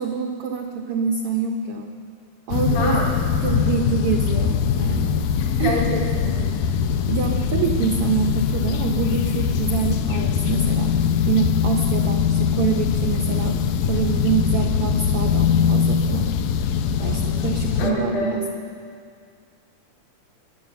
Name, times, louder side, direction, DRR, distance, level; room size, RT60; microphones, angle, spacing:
voice 1, 0.0-1.9 2.5-3.0 3.4-5.2 5.6-5.7 7.1-10.9 11.3-13.6 13.9-16.3 17.0-18.4, right 6 dB, 75° right, 3 dB, 1.3 m, -25 dB
sound 1, 2.5-17.9, left 7 dB, 85° left, 2.3 m, -22 dB
voice 2, 2.7-3.1 5.4-6.5 17.0-17.4 17.8-18.3, left 1 dB, 70° left, -2 dB, 4.0 m, -27 dB
22.0 x 8.9 x 6.8 m, 2.3 s
omnidirectional pair, 3.7 m